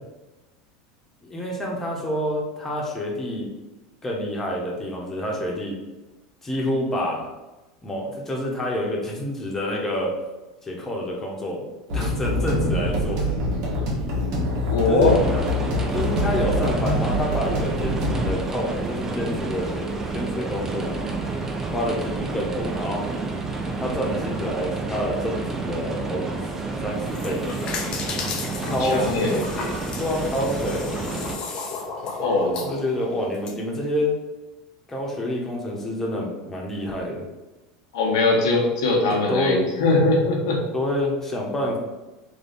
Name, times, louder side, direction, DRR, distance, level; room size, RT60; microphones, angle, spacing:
voice 1, 1.2-3.5 4.0-5.8 6.4-7.3 7.8-10.1 10.6-11.6 11.9-13.2 14.9-15.4 15.9-21.1 21.7-23.0 23.8-26.4 26.8-27.8 28.5-29.1 30.0-31.0 32.6-34.2 34.9-37.2 39.1-39.6 40.7-41.8, left 1 dB, 20° left, -2 dB, 1.2 m, -28 dB
sound 1, 11.9-18.3, left 1 dB, 60° right, 1.3 m, -25 dB
voice 2, 14.7-15.2 28.6-29.4 32.2-32.6 37.9-40.6, left 2 dB, 75° left, 0 dB, 1.0 m, -21 dB
sound 2, 15.1-31.4, right 3 dB, 20° right, 0.6 m, -30 dB
sound 3, 26.9-33.5, left 4 dB, 40° left, 0.7 m, -33 dB
3.3 x 2.7 x 4.3 m, 1.1 s
hypercardioid pair, 85°, 2 cm